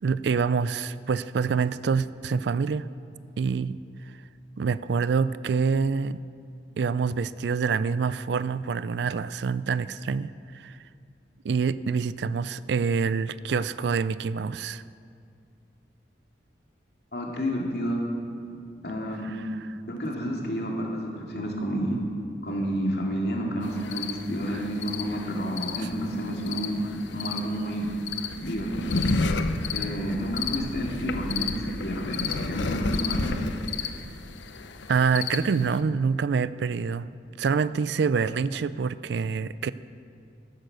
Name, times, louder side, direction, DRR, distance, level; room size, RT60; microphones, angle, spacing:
voice 1, 0.0-2.9 3.4-3.8 4.6-6.2 6.8-10.8 11.4-14.8 19.2-19.4 19.7-19.8 24.5-24.6 34.9-37.1 37.4-39.7, right 5 dB, 70° right, 16 dB, 0.4 m, -26 dB
voice 2, 17.1-18.0 18.8-19.3 19.9-22.0 22.4-27.9 28.4-29.0 29.7-33.4, equal, 60° left, -1 dB, 2.3 m, -30 dB
sound 1, 23.6-35.8, left 4 dB, 80° left, 0.7 m, -32 dB
13.0 x 10.5 x 6.7 m, 2.3 s
head